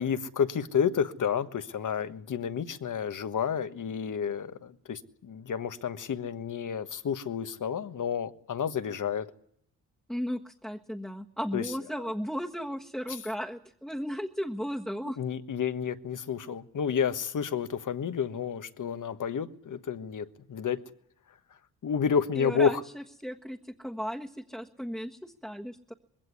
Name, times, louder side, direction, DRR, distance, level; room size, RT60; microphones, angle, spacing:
voice 1, 0.0-9.3 11.5-11.7 15.2-20.8 21.8-22.8, left 7 dB, 55° left, 1.4 m, -30 dB
voice 2, 10.1-15.2 22.3-25.9, equal, ahead, 1.5 m, -35 dB
21.5 x 16.5 x 9.7 m
cardioid pair, 95°, 37 cm